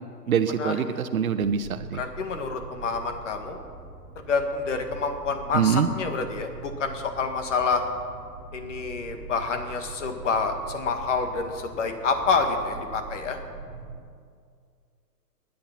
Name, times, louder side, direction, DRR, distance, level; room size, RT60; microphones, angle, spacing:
voice 1, 0.3-2.0 5.5-5.9, right 7 dB, 55° right, 11 dB, 1.1 m, -24 dB
sound 1, 1.4-14.0, right 4 dB, 10° right, 3.9 m, -42 dB
voice 2, 1.9-3.6 4.3-7.8 8.5-13.4, left 4 dB, 45° left, 6 dB, 1.9 m, -28 dB
23.0 x 10.0 x 5.9 m, 2.2 s
hypercardioid pair, 170°, 49 cm